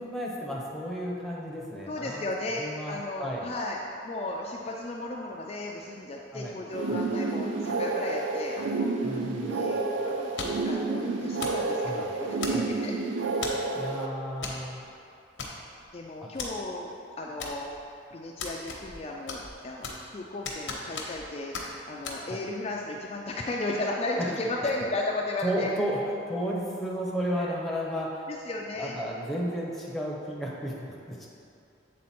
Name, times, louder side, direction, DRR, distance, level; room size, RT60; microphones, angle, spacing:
voice 1, 0.0-2.3 2.6-3.5 6.3-6.6 6.9-7.1 9.0-9.7 11.8-12.1 12.5-12.8 13.8-14.8 16.2-16.3 22.3-22.4 24.2-24.4 25.4-26.0 26.3-28.2 28.7-31.3, equal, ahead, -4 dB, 0.7 m, -33 dB
voice 2, 1.9-3.8 4.0-12.9 15.9-17.7 18.1-25.7 27.3-27.5 28.3-29.0, left 2 dB, 30° left, -2 dB, 0.3 m, -35 dB
sound 1, 6.7-14.1, right 3 dB, 85° right, 0.5 m, -30 dB
sound 2, 10.4-10.7 11.4-11.7 12.4-12.8 13.4-13.7 14.4-14.6 14.9-15.0 15.4-15.9 16.4-16.5 17.4-17.9 18.4-19.0 19.3-20.1 20.4-21.3 21.5-21.7 22.0-22.2, left 4 dB, 80° left, 0.9 m, -36 dB
7.4 x 3.8 x 4.3 m, 2.6 s
head